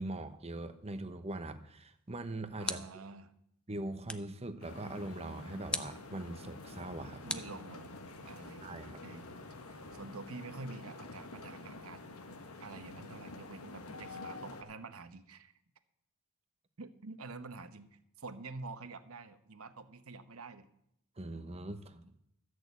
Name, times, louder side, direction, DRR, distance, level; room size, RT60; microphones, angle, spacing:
voice 1, 0.0-2.8 3.7-7.4 8.6-9.0 21.2-22.1, right 2 dB, 30° right, 10 dB, 0.9 m, -41 dB
sound 1, 2.0-3.2 4.1-4.4 5.7-6.1 7.3-8.2, left 1 dB, 5° left, 0.5 m, -40 dB
voice 2, 2.6-3.3 7.2-12.0 12.6-15.5 16.8-20.7, right 3 dB, 70° right, 10 dB, 0.9 m, -48 dB
sound 2, 4.6-14.6, left 2 dB, 80° left, 1.3 m, -48 dB
13.5 x 6.3 x 8.1 m, 0.76 s
head